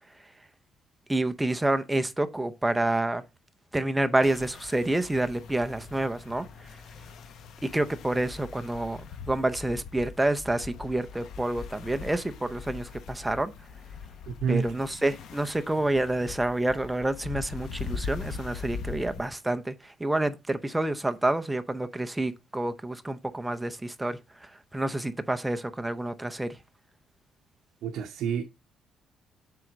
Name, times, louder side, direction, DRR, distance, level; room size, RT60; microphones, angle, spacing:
voice 1, 1.1-3.2 3.7-6.5 7.6-13.5 14.5-26.6, right 1 dB, 5° right, 0.6 m, -28 dB
sound 1, 4.2-19.3, left 5 dB, 60° left, 0.9 m, -41 dB
voice 2, 14.3-14.7 27.8-28.4, right 6 dB, 60° right, 0.8 m, -29 dB
7.6 x 3.8 x 6.1 m
cardioid pair, 160°, 0 cm